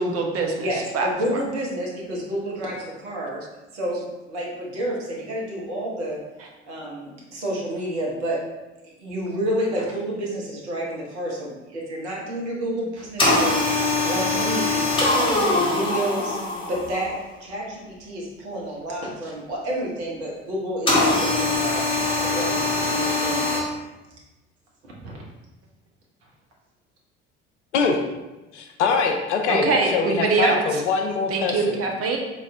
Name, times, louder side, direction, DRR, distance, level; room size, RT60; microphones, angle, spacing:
voice 1, 0.0-0.6 0.9-1.1 29.5-30.8 31.3-32.2, right 3 dB, 40° right, 2 dB, 0.9 m, -23 dB
voice 2, 0.5-3.4 3.7-4.0 4.3-6.2 6.6-8.4 8.8-13.8 14.0-16.4 16.7-23.6 25.0-25.1, right 1 dB, 70° right, -3 dB, 1.2 m, -30 dB
sound 1, 13.2-17.1 20.9-23.6, left 2 dB, 15° left, 1.4 m, -22 dB
voice 3, 28.5-31.8, left 5 dB, 75° left, 4 dB, 0.6 m, -23 dB
4.2 x 3.0 x 3.6 m, 1.1 s
figure-of-eight pair, 55°, 35 cm